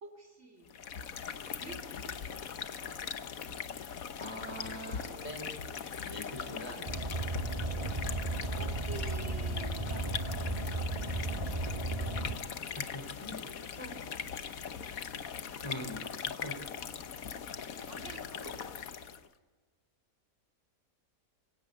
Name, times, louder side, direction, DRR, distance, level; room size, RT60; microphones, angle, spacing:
voice 1, 0.0-0.8 1.6-2.2 8.5-10.4 17.9-18.6, right 2 dB, 50° right, 1 dB, 3.2 m, -48 dB
sound 1, 0.7-19.3, left 7 dB, 70° left, 1.4 m, -40 dB
voice 2, 4.2-5.6 6.0-7.1 12.8-13.4 13.7-14.0 15.6-16.5, equal, 20° left, 4 dB, 4.2 m, -43 dB
Car, 6.9-12.3, right 2 dB, 25° right, 1.7 m, -35 dB
24.0 x 17.0 x 8.2 m, 1.4 s
omnidirectional pair, 1.5 m